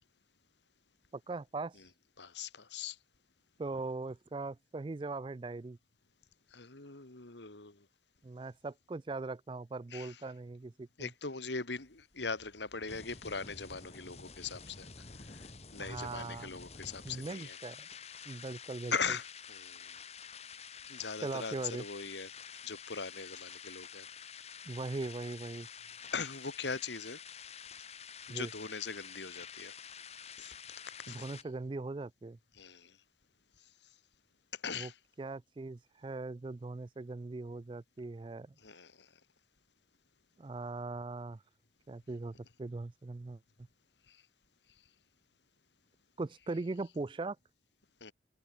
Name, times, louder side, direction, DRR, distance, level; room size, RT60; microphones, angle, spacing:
voice 1, 1.3-1.8 3.6-5.8 8.2-11.1 15.8-16.5 17.0-17.9 18.3-18.9 21.2-21.8 24.6-25.7 28.3-28.5 31.1-32.4 34.7-34.9 35.2-38.5 40.4-41.4 41.9-43.4 46.2-47.4, right 3 dB, 25° right, 0.4 m, -40 dB
voice 2, 2.2-3.0 6.5-7.9 9.9-10.2 11.0-14.9 15.3-17.6 18.1-18.4 18.9-20.0 20.9-22.3 22.6-24.1 26.1-27.2 28.3-29.7 30.4-30.5 31.1-31.3 32.5-33.0 34.5-35.0 38.6-39.1 44.1-44.2 48.0-48.1, left 5 dB, 80° left, 2.4 m, -40 dB
sound 1, 11.8-31.4, left 6 dB, 35° left, 2.2 m, -49 dB
head